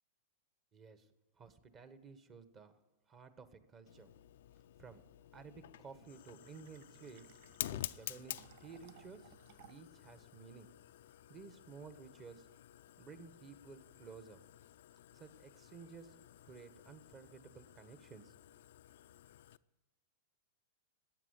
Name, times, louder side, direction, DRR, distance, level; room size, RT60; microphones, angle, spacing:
voice 1, 0.7-1.1 1.4-2.8 3.1-4.1 4.8-5.0 5.3-7.3 7.7-9.3 9.6-10.7 11.3-12.5 13.0-14.4 15.1-16.2 16.5-18.3, right 5 dB, 30° right, 11 dB, 1.4 m, -54 dB
Fire, 3.9-19.6, left 12 dB, 70° left, 0.4 m, -51 dB
Fill (with liquid), 6.0-10.0, right 12 dB, 55° right, 0.4 m, -63 dB
13.5 x 9.1 x 9.7 m, 1.1 s
hypercardioid pair, 115°, 0 cm